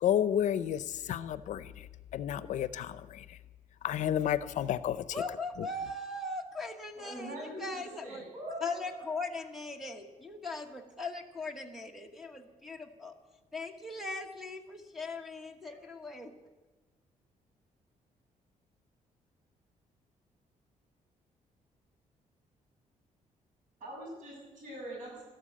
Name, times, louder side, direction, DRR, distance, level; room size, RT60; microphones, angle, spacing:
voice 1, 0.0-1.7 2.1-3.2 3.8-5.7, left 10 dB, 65° left, 15 dB, 0.6 m, -31 dB
voice 2, 5.1-8.2 8.6-13.1 13.5-16.3, left 3 dB, ahead, -1 dB, 1.1 m, -39 dB
voice 3, 6.9-9.1 15.7-15.8 23.8-25.2, equal, 75° right, -2 dB, 7.0 m, -43 dB
13.0 x 12.5 x 8.6 m, 1.2 s
cardioid pair, 170°, 13 cm